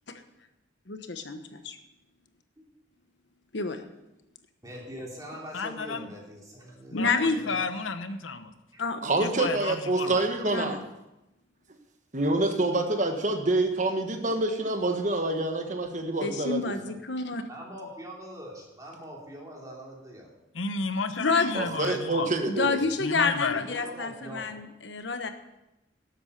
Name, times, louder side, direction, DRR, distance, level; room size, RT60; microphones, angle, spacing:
voice 1, 0.9-1.8 3.5-3.8 6.9-7.4 8.8-9.1 10.5-10.8 16.2-17.4 21.2-21.5 22.5-25.3, left 4 dB, 65° left, 8 dB, 1.2 m, -28 dB
voice 2, 4.6-7.6 8.7-8.8 17.5-20.3 23.5-24.5, equal, 20° right, -2 dB, 3.0 m, -42 dB
voice 3, 5.5-6.1 6.9-8.5 9.2-10.2 20.5-22.3 23.0-23.7, left 4 dB, 90° left, 10 dB, 1.0 m, -32 dB
voice 4, 9.0-10.8 12.1-16.7 21.5-22.8, right 2 dB, 40° right, 5 dB, 1.4 m, -27 dB
12.5 x 8.1 x 6.7 m, 0.94 s
head